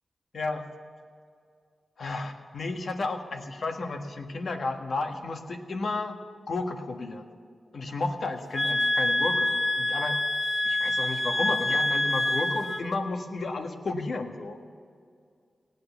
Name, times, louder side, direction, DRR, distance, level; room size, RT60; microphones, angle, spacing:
voice 1, 0.3-0.7 2.0-6.2 6.5-7.3 7.7-9.5 9.8-10.2 10.6-14.6, left 3 dB, 70° left, 4 dB, 1.5 m, -32 dB
sound 1, 8.5-12.8, left 1 dB, 10° left, 1.0 m, -26 dB
17.5 x 9.6 x 7.0 m, 2.2 s
cardioid pair, 55°, 0 cm